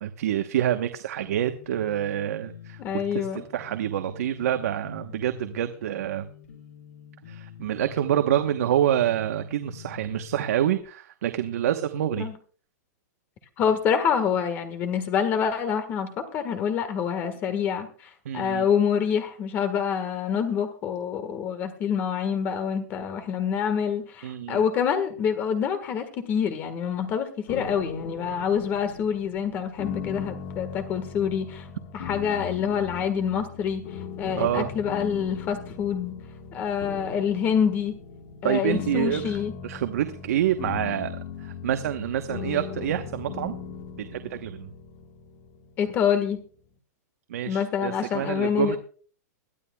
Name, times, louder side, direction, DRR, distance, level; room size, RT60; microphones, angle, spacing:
voice 1, 0.0-2.8 3.3-6.3 7.3-12.3 18.2-18.7 24.2-24.6 34.4-34.7 38.4-39.4 39.6-43.6 44.1-44.7 47.3-48.8, right 11 dB, 60° right, 7 dB, 1.1 m, -27 dB
sound 1, 1.2-10.8, left 8 dB, 60° left, 5.9 m, -47 dB
voice 2, 2.8-3.4 12.2-12.3 13.6-31.7 31.9-36.1 36.5-37.9 38.4-39.5 45.8-46.4 47.4-48.8, left 7 dB, 20° left, 9 dB, 1.5 m, -26 dB
sound 2, 27.5-46.4, left 6 dB, 40° left, 1.5 m, -38 dB
22.0 x 13.0 x 2.3 m, 0.42 s
supercardioid pair, 175°, 9 cm